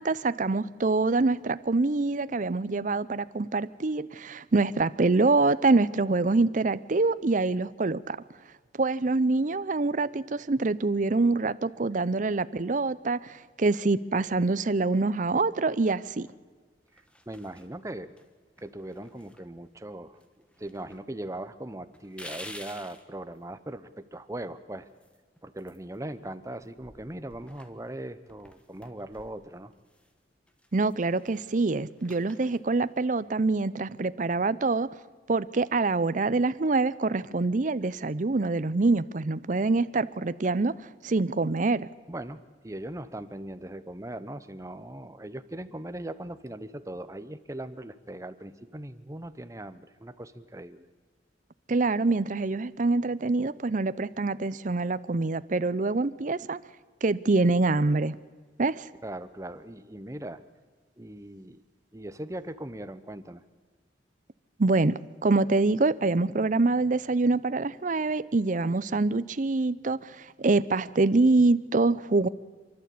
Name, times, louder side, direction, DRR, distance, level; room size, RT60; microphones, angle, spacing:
voice 1, 0.0-8.2 8.8-16.3 30.7-34.9 35.3-40.7 41.0-41.9 51.7-56.6 57.0-58.2 58.6-58.9 64.6-72.3, right 3 dB, 45° right, 15 dB, 0.6 m, -25 dB
sound 1, 14.7-15.4 15.9-16.4 16.9-17.7 18.2-18.3 18.6-19.9 20.2-21.0 21.3-21.4 21.9-23.0 24.9-26.3 26.6-30.1 30.5-33.1, left 1 dB, 5° left, 1.3 m, -50 dB
voice 2, 16.9-18.1 18.6-20.2 20.6-24.9 25.4-29.7 42.1-50.9 59.0-60.4 61.0-61.6 61.9-63.4, right 1 dB, 15° right, 12 dB, 0.8 m, -39 dB
28.0 x 12.0 x 8.5 m, 1.5 s
head